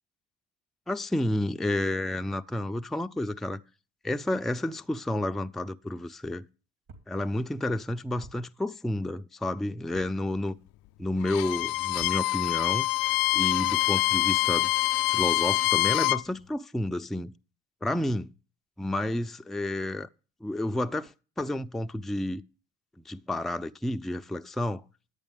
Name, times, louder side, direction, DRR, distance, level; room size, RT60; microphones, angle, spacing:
voice 1, 0.9-3.6 4.0-6.5 7.1-10.6 11.0-12.9 13.3-14.7 15.1-17.3 17.8-18.3 18.8-20.1 20.4-22.4 23.0-24.8, left 1 dB, ahead, 0.5 m, -30 dB
sound 1, 6.9-7.1 8.2-8.4 9.9-10.1 11.9-12.2, right 3 dB, 55° right, 2.9 m, -49 dB
Bowed string instrument, 11.2-16.2, left 17 dB, 65° left, 0.5 m, -25 dB
10.5 x 8.4 x 3.5 m
hypercardioid pair, 55°, 37 cm